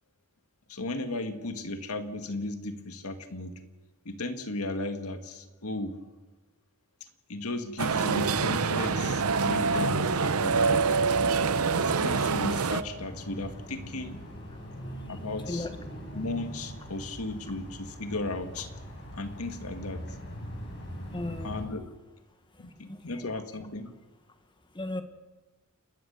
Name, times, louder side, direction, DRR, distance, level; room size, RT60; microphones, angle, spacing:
voice 1, 0.7-3.6 4.1-6.0 7.3-11.0 11.7-14.2 15.1-15.7 16.1-18.7 19.1-20.0 21.4-21.9 22.6-23.9, left 2 dB, 85° left, 7 dB, 1.9 m, -35 dB
sound 1, 7.8-12.8, right 4 dB, 85° right, 0.8 m, -26 dB
sound 2, 8.1-21.6, equal, 55° left, 6.8 m, -42 dB
voice 2, 21.1-21.7 22.9-23.4 24.7-25.0, left 2 dB, 20° left, 8 dB, 1.6 m, -36 dB
29.5 x 13.5 x 6.7 m, 1.2 s
head